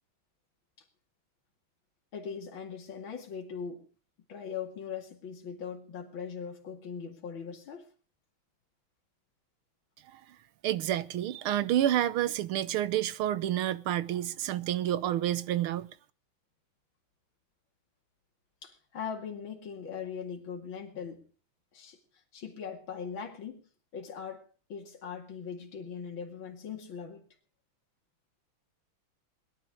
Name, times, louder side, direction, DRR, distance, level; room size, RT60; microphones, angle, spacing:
voice 1, 2.1-3.9 4.3-7.8 18.6-21.2 21.7-22.0 22.3-23.6 23.9-27.2, left 6 dB, 65° left, 3.0 m, -40 dB
voice 2, 10.6-15.9, right 12 dB, 80° right, 1.8 m, -29 dB
22.0 x 11.5 x 4.8 m
omnidirectional pair, 2.3 m